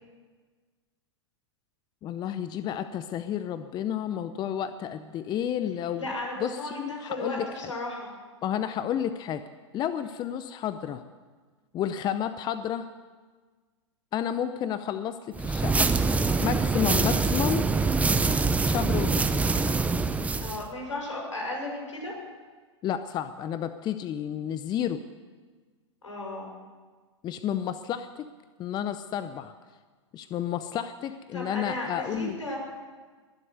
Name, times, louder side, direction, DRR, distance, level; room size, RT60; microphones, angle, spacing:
voice 1, 2.0-6.1 6.4-7.5 8.4-9.4 9.7-11.0 11.7-12.9 14.1-16.0 16.4-17.7 18.6-19.3 22.8-25.1 27.2-28.3 28.6-29.5 30.1-32.4, left 10 dB, 25° left, 12 dB, 0.7 m, -31 dB
voice 2, 6.0-8.1 20.4-22.1 26.0-26.5 31.3-32.6, left 2 dB, 90° left, -1 dB, 6.6 m, -34 dB
sound 1, 15.3-20.6, right 4 dB, 10° right, 0.7 m, -24 dB
21.5 x 7.8 x 8.0 m, 1.4 s
hypercardioid pair, 110°, 16 cm